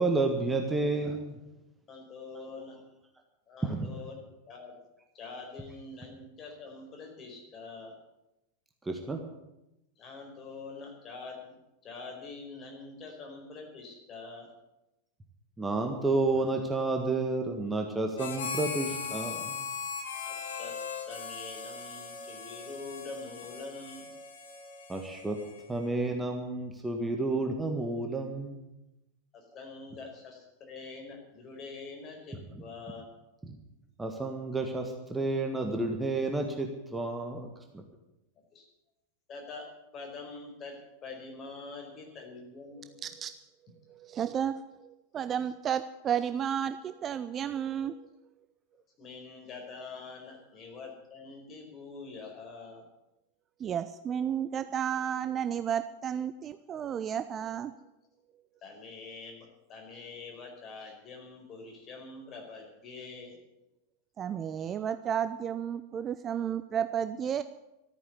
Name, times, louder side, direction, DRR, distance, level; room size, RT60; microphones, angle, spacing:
voice 1, 0.0-1.4 2.4-2.5 3.6-3.9 8.9-9.2 15.6-19.7 24.9-25.4 25.7-28.7 34.0-37.8, right 2 dB, 10° right, 3 dB, 1.7 m, -31 dB
voice 2, 1.9-2.8 3.5-4.2 4.5-4.8 5.1-7.9 10.0-11.5 11.8-14.5 20.2-20.7 21.1-24.0 29.3-33.1 38.5-38.6 39.3-39.6 39.9-40.7 41.0-43.0 49.0-52.8 58.6-63.4 64.6-64.7, left 4 dB, 30° left, 1 dB, 4.7 m, -45 dB
Harmonica, 18.2-25.9, left 5 dB, 60° left, 2.4 m, -39 dB
voice 3, 43.0-43.3 44.2-44.5 45.1-48.1 53.6-57.7 64.2-67.4, right 9 dB, 25° right, 12 dB, 0.5 m, -32 dB
14.0 x 9.3 x 9.6 m, 0.92 s
figure-of-eight pair, 90°, 0 cm